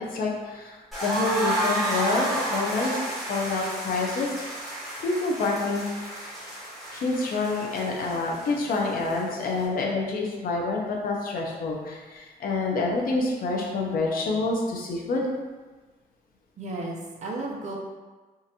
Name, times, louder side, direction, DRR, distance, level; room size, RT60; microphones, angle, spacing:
voice 1, 0.1-3.0 3.3-4.3 5.0-5.9 6.9-15.2, left 3 dB, 60° left, -1 dB, 0.6 m, -27 dB
sound 1, 0.9-9.7, right 1 dB, ahead, 1.3 m, -31 dB
voice 2, 16.6-17.8, right 2 dB, 45° right, -2 dB, 0.6 m, -33 dB
3.8 x 2.5 x 2.8 m, 1.3 s
cardioid pair, 150°, 16 cm